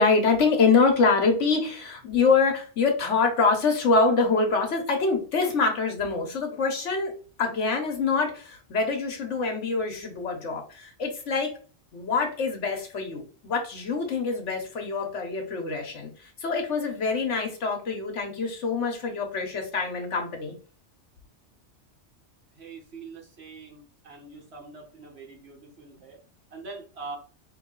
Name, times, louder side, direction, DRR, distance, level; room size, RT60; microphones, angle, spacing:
voice 1, 0.0-7.1 7.4-11.5 11.9-20.5, left 4 dB, 90° left, 3 dB, 1.5 m, -25 dB
voice 2, 22.5-26.2 26.5-27.2, right 4 dB, 65° right, 1 dB, 1.7 m, -43 dB
4.1 x 3.4 x 3.8 m, 0.38 s
omnidirectional pair, 1.2 m